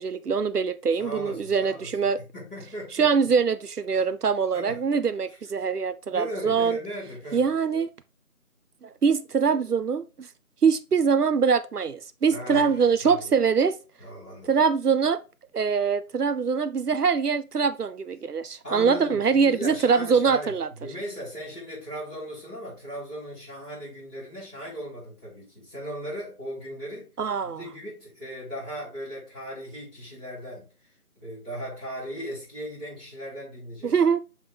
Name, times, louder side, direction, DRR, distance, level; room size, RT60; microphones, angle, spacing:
voice 1, 0.0-2.2 3.0-6.8 7.3-7.9 8.8-10.3 10.6-13.8 14.5-15.2 15.5-20.7 27.2-27.6 33.8-34.2, right 6 dB, 90° right, 0.7 m, -23 dB
voice 2, 1.0-3.3 3.9-4.0 4.5-5.4 6.1-7.4 12.3-13.3 14.0-14.6 18.6-27.1 27.4-30.7 31.2-34.0, equal, 5° left, 3.5 m, -38 dB
7.1 x 3.7 x 3.8 m
figure-of-eight pair, 170°, 45 cm